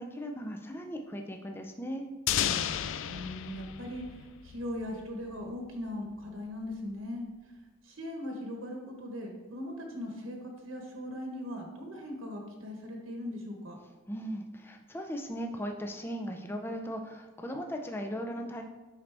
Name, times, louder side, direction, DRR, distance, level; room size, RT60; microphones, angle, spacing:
voice 1, 0.0-2.1 14.1-18.6, equal, 10° left, 3 dB, 0.5 m, -37 dB
sound 1, 2.3-5.0, left 10 dB, 70° left, 0.3 m, -33 dB
voice 2, 3.0-7.3 7.8-13.8, left 1 dB, 80° right, 1 dB, 1.1 m, -39 dB
10.0 x 4.0 x 3.4 m, 1.2 s
head